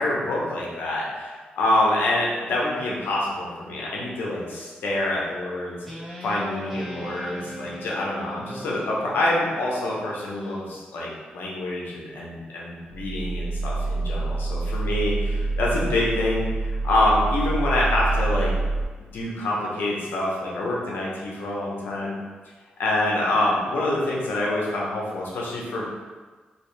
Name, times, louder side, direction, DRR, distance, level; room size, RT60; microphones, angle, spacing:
voice 1, 0.0-5.8 6.2-18.8 19.1-22.1 22.8-25.8, left 1 dB, 85° left, -4 dB, 0.8 m, -26 dB
Guitar, 5.9-10.6, right 1 dB, ahead, 0.9 m, -38 dB
sound 1, 12.9-18.8, right 3 dB, 50° right, 0.4 m, -26 dB
2.9 x 2.7 x 3.2 m, 1.4 s
cardioid pair, 65°, 3 cm